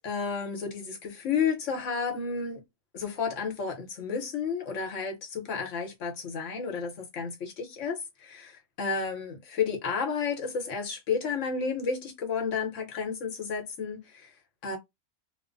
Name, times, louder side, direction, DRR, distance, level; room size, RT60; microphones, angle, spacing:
voice 1, 0.0-2.6 2.9-14.3 14.6-14.8, left 5 dB, 75° left, 1.3 m, -32 dB
2.9 x 2.1 x 2.4 m
omnidirectional pair, 1.3 m